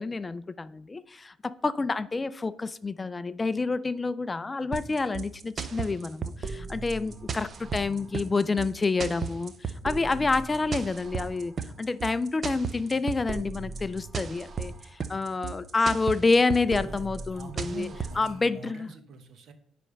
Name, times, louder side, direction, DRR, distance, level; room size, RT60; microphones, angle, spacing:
voice 1, 0.0-17.9 18.2-18.9, left 3 dB, 25° left, 14 dB, 0.3 m, -28 dB
sound 1, 4.7-18.3, right 5 dB, 40° right, 0.6 m, -35 dB
voice 2, 7.6-8.3 16.7-19.5, right 4 dB, 60° right, 9 dB, 1.0 m, -44 dB
9.8 x 3.3 x 5.2 m, 0.68 s
cardioid pair, 110°, 0 cm